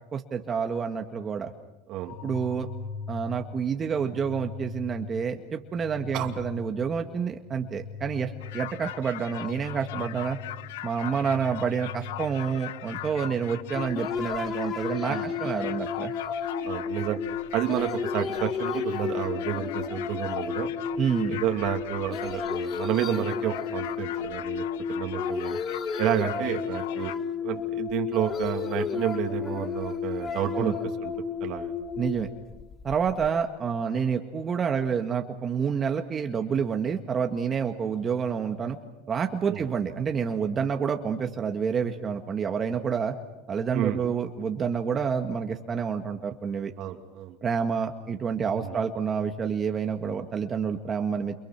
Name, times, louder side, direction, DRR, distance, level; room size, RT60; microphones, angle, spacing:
voice 1, 0.1-1.5 2.2-2.7 3.1-10.4 10.8-16.1 21.0-21.4 30.5-30.7 32.0-32.3 32.8-38.8 39.1-43.1 43.5-46.7 47.4-51.3, right 6 dB, 25° right, 4 dB, 1.8 m, -28 dB
sound 1, 2.0-14.0, left 5 dB, 65° left, 5.6 m, -42 dB
sound 2, 8.4-27.1, left 14 dB, 85° left, 0.9 m, -40 dB
sound 3, 13.8-33.3, left 6 dB, 30° left, 1.7 m, -32 dB
voice 2, 16.7-17.2 17.5-20.7 21.3-24.6 24.9-25.6 26.0-27.1 27.4-30.7 31.0-31.1 31.4-31.7 39.5-39.6 43.7-44.0 46.8-47.4 48.5-48.7, right 12 dB, 55° right, 3 dB, 2.8 m, -30 dB
29.5 x 29.0 x 6.0 m, 0.95 s
supercardioid pair, 130°, 0 cm